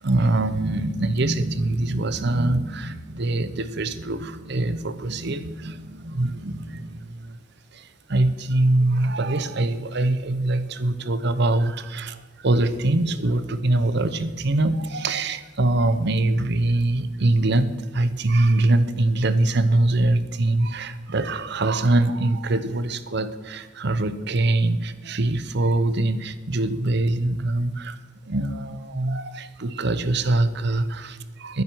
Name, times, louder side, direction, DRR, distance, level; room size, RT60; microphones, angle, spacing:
voice 1, 0.0-7.4 7.7-28.0 28.3-31.6, right 2 dB, 60° right, 12 dB, 0.8 m, -23 dB
12.0 x 10.5 x 6.2 m, 1.2 s
head